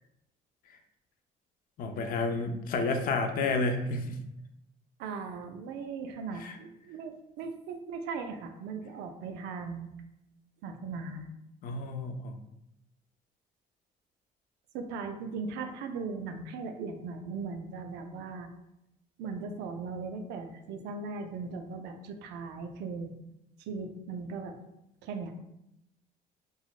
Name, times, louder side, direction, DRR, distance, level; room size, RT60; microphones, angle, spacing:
voice 1, 1.8-4.2 6.4-6.6 11.6-12.4, left 3 dB, 55° left, 5 dB, 0.4 m, -30 dB
voice 2, 5.0-9.9 10.6-11.3 14.7-18.5 19.2-23.1 23.7-24.6 25.0-25.3, right 4 dB, 85° right, 6 dB, 0.4 m, -38 dB
3.8 x 2.0 x 2.3 m, 0.84 s
cardioid pair, 110°, 17 cm